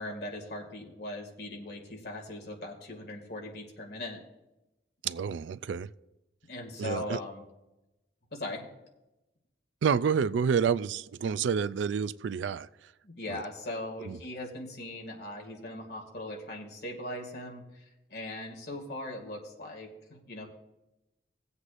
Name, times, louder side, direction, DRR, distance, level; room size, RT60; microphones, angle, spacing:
voice 1, 0.0-4.2 6.5-7.4 8.3-8.6 13.0-20.5, left 1 dB, 55° left, 2.2 m, -39 dB
voice 2, 5.0-5.9 6.8-7.2 9.8-12.7 13.3-13.4 14.0-14.2, right 6 dB, 80° right, 0.3 m, -29 dB
18.5 x 8.1 x 2.5 m
head